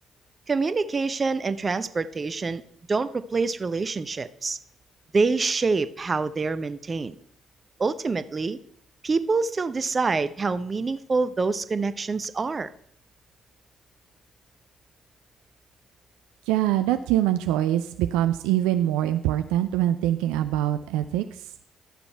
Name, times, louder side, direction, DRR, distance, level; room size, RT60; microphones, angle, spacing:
voice 1, 0.5-2.6 2.9-4.6 5.1-7.1 7.8-8.6 9.0-12.7, right 4 dB, 35° right, 13 dB, 0.7 m, -26 dB
voice 2, 16.5-21.2, right 13 dB, 75° right, 9 dB, 0.4 m, -24 dB
11.5 x 7.0 x 4.5 m, 0.67 s
hypercardioid pair, 45°, 0 cm